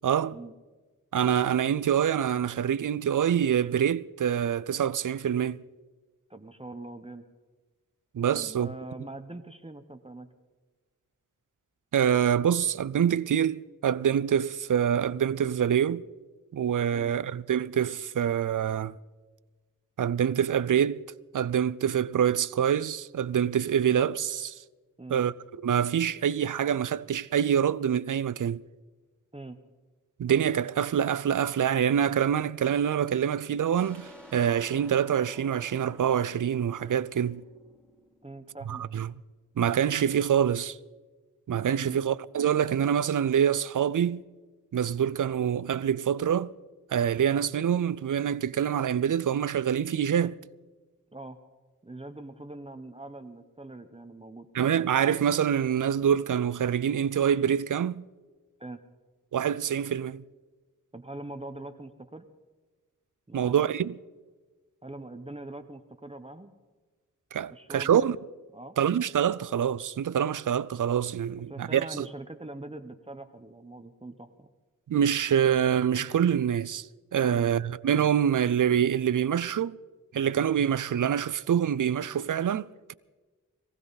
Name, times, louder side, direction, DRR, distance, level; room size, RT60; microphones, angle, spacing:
voice 1, 0.0-0.4 1.1-5.6 8.1-8.7 11.9-16.1 16.5-19.0 20.0-21.0 21.3-24.6 25.1-25.3 25.6-28.6 30.2-37.4 38.7-39.1 39.6-40.8 41.5-44.2 44.7-46.5 46.9-50.4 54.5-58.0 59.3-60.2 63.3-64.0 67.3-68.2 68.8-72.1 74.9-76.9 77.1-79.8 80.1-82.9, right 9 dB, 70° right, 0.5 m, -26 dB
voice 2, 6.3-7.2 8.3-10.3 16.9-17.1 25.0-25.2 29.3-29.6 38.2-38.8 41.8-42.0 51.1-51.4 51.8-54.5 58.6-58.8 60.9-62.3 63.3-63.7 64.8-66.5 67.5-68.2 68.5-68.8 71.5-74.5, right 2 dB, 20° right, 0.9 m, -42 dB
sound 1, 33.7-39.0, left 1 dB, 5° left, 2.6 m, -51 dB
22.5 x 15.5 x 4.1 m
wide cardioid pair, 60°, 32 cm